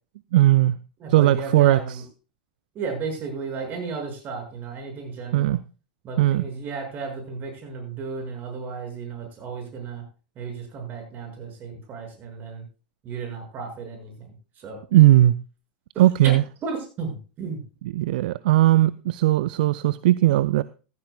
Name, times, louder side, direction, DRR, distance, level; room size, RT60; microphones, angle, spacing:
voice 1, 0.3-0.8 1.1-2.0 5.3-5.6 6.2-6.5 14.9-15.4 16.0-16.4 17.9-20.6, right 15 dB, 65° right, 17 dB, 0.5 m, -18 dB
voice 2, 1.0-2.0 2.7-5.6 6.0-10.0 10.4-12.6 13.0-14.8 16.2-16.3 16.6-17.6, right 5 dB, 35° right, 3 dB, 6.3 m, -34 dB
15.0 x 14.5 x 2.3 m, 0.34 s
hypercardioid pair, 90°, 5 cm